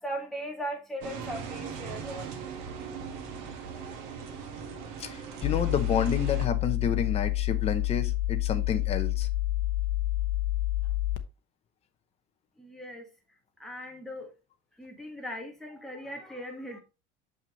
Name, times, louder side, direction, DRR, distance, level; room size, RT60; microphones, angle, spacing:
voice 1, 0.0-2.2 12.6-13.1 13.6-14.3 14.8-16.8, equal, ahead, 1.7 m, -38 dB
sound 1, 1.0-6.5, right 6 dB, 80° right, 1.8 m, -39 dB
voice 2, 5.0-9.3, left 7 dB, 30° left, 0.9 m, -30 dB
sound 2, 5.4-11.2, left 15 dB, 70° left, 0.9 m, -28 dB
7.1 x 5.5 x 3.2 m
cardioid pair, 165°, 21 cm